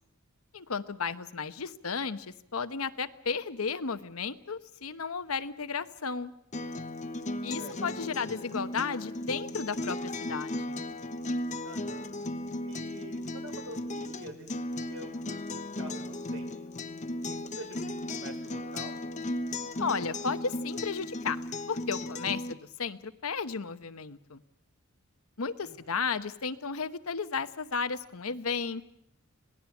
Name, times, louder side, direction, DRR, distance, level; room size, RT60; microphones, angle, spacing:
voice 1, 0.5-6.3 7.4-10.8 19.8-21.4 21.7-24.4 25.4-28.9, left 5 dB, 90° left, 11 dB, 1.0 m, -34 dB
Acoustic guitar, 6.5-22.5, left 1 dB, 35° left, 0.9 m, -36 dB
voice 2, 7.1-7.8 11.6-12.1 12.6-16.5 17.2-18.9 25.6-26.0, right 1 dB, 75° right, 5 dB, 5.1 m, -47 dB
26.5 x 18.5 x 7.2 m, 0.79 s
head